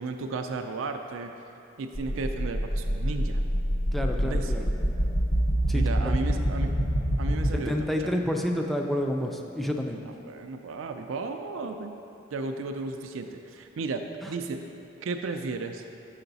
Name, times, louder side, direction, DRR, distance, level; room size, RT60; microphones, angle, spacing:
voice 1, 0.0-1.3 1.8-3.4 4.2-4.5 5.7-6.7 7.2-8.1 10.1-12.0 12.3-14.6 15.0-15.8, right 3 dB, 80° right, 5 dB, 0.4 m, -34 dB
sound 1, 2.0-7.5, equal, 50° left, 0.8 m, -26 dB
voice 2, 3.9-4.6 5.7-6.1 7.5-10.0 14.2-14.3, equal, ahead, 2 dB, 0.4 m, -29 dB
6.7 x 5.7 x 4.0 m, 2.8 s
head